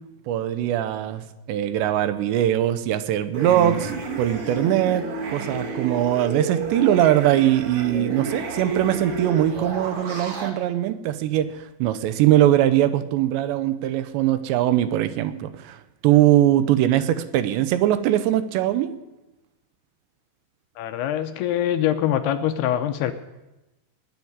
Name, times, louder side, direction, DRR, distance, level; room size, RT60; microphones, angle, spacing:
voice 1, 0.3-3.9 4.2-15.8 16.0-18.9, right 12 dB, 80° right, 12 dB, 3.0 m, -21 dB
sound 1, 3.3-10.5, right 3 dB, 55° right, 1.6 m, -31 dB
voice 2, 20.8-23.1, left 11 dB, 80° left, 8 dB, 2.5 m, -24 dB
20.0 x 7.2 x 9.6 m, 1.0 s
omnidirectional pair, 5.1 m